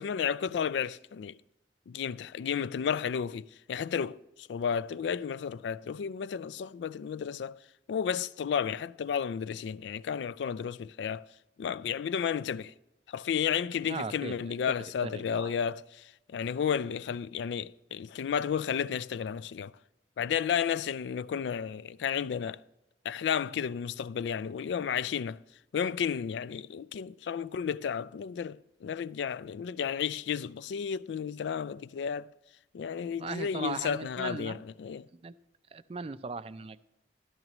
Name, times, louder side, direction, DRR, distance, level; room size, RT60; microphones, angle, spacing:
voice 1, 0.0-1.3 1.9-7.6 7.9-11.3 11.6-12.7 13.1-16.0 16.3-19.7 20.2-22.6 23.0-25.4 25.7-32.3 32.7-35.1, left 7 dB, 80° left, 0.3 m, -32 dB
voice 2, 13.8-14.8 15.0-15.5 33.2-34.6 35.1-35.3 35.7-36.9, right 4 dB, 35° right, 0.3 m, -38 dB
12.5 x 12.0 x 3.0 m
head